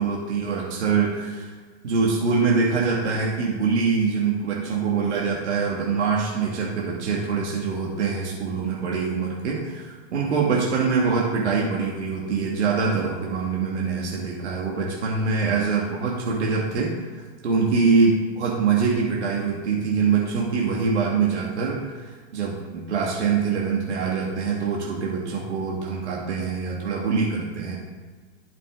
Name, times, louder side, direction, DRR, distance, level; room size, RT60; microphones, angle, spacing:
voice 1, 0.0-1.5 1.8-27.8, right 5 dB, 85° right, -3 dB, 2.3 m, -24 dB
12.0 x 6.6 x 3.9 m, 1.5 s
supercardioid pair, 145°, 34 cm